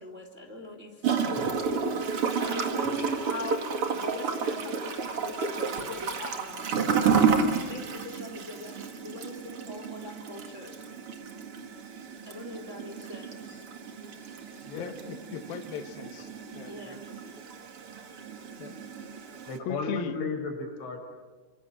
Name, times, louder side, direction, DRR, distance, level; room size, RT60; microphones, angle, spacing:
voice 1, 0.0-10.7 12.0-13.7 14.7-14.8 16.6-17.0 17.6-18.1 18.5-18.6, left 1 dB, 20° right, 3 dB, 2.8 m, -42 dB
Gurgling / Toilet flush, 1.0-19.6, right 5 dB, 50° right, 1.8 m, -31 dB
voice 2, 14.8-16.7 18.6-18.8 19.6-20.2, left 9 dB, 65° left, 6 dB, 2.6 m, -38 dB
voice 3, 19.5-21.0, left 3 dB, 85° left, 2 dB, 8.6 m, -34 dB
29.0 x 25.5 x 7.8 m, 1.2 s
omnidirectional pair, 5.4 m